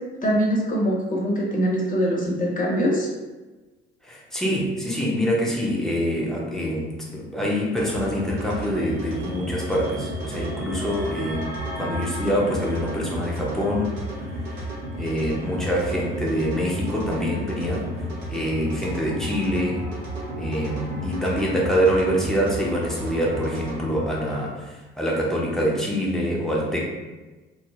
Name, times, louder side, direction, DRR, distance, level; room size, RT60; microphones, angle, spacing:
voice 1, 0.2-3.1, equal, 25° left, -3 dB, 0.9 m, -23 dB
voice 2, 4.0-13.9 14.2-14.7 15.0-17.9 18.3-19.8 20.4-26.8, equal, ahead, -4 dB, 0.8 m, -25 dB
sound 1, 7.7-24.4, right 1 dB, 65° right, 1.1 m, -32 dB
3.4 x 2.0 x 2.5 m, 1.2 s
figure-of-eight pair, 50°, 31 cm